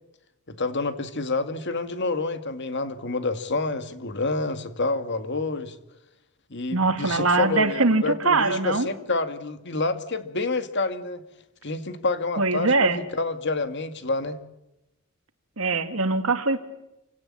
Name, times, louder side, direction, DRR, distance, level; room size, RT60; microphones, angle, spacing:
voice 1, 0.5-5.8 6.5-11.2 11.6-14.4, left 3 dB, 55° left, 10 dB, 2.2 m, -28 dB
voice 2, 6.7-8.9 12.4-13.0 15.6-16.6, right 3 dB, 70° right, 9 dB, 2.4 m, -22 dB
28.0 x 17.5 x 8.7 m, 0.91 s
head